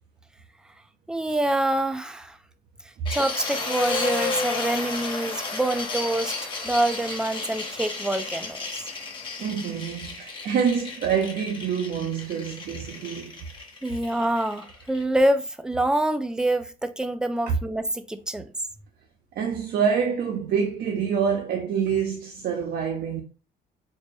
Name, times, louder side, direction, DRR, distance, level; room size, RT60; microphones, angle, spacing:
voice 1, 1.1-2.4 3.1-8.8 13.8-18.5, right 1 dB, 5° right, 0.4 m, -26 dB
sound 1, 3.1-15.0, left 3 dB, 30° left, 1.1 m, -33 dB
voice 2, 9.4-13.3 17.5-17.6 19.4-23.2, right 7 dB, 65° right, 0.7 m, -26 dB
4.3 x 2.1 x 3.2 m
cardioid pair, 110°, 17 cm